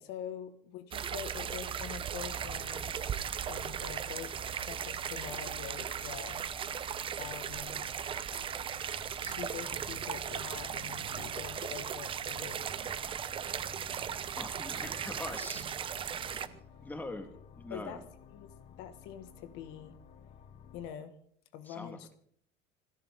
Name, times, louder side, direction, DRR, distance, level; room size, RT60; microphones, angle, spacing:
voice 1, 0.0-3.0 3.5-6.4 7.2-7.8 9.2-12.7 16.2-16.3 17.7-18.0 18.3-20.0 20.7-21.1 21.5-22.1, left 9 dB, 75° left, 8 dB, 1.9 m, -45 dB
sound 1, 0.9-16.5, right 8 dB, 30° right, 0.8 m, -37 dB
sound 2, 1.3-20.9, left 7 dB, 35° left, 1.0 m, -54 dB
sound 3, 9.1-16.9, right 10 dB, 65° right, 1.5 m, -54 dB
voice 2, 14.3-15.7 16.8-18.1 21.6-22.1, left 2 dB, 10° left, 5 dB, 2.0 m, -43 dB
28.5 x 11.0 x 3.8 m, 0.63 s
cardioid pair, 150°, 18 cm